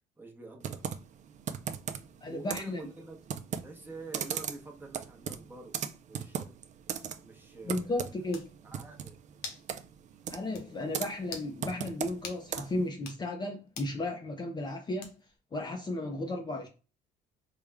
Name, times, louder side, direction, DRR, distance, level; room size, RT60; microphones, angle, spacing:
voice 1, 0.2-0.9 2.3-3.2 3.6-5.8 6.1-6.5 7.2-8.1 8.6-9.2, right 3 dB, 10° right, 0.9 m, -47 dB
Computer keyboard, 0.6-12.9, right 8 dB, 45° right, 0.4 m, -39 dB
voice 2, 2.2-2.8 7.6-8.4 10.3-15.2 15.5-16.7, left 2 dB, 25° left, 0.5 m, -34 dB
sound 1, 8.3-8.5 9.4-9.7 10.0-10.1 10.5-10.7 11.2-11.5 12.2-12.4 12.9-13.2 13.7-14.0 15.0-15.4, left 5 dB, 75° left, 0.9 m, -43 dB
3.4 x 2.2 x 3.4 m
cardioid pair, 110°, 17 cm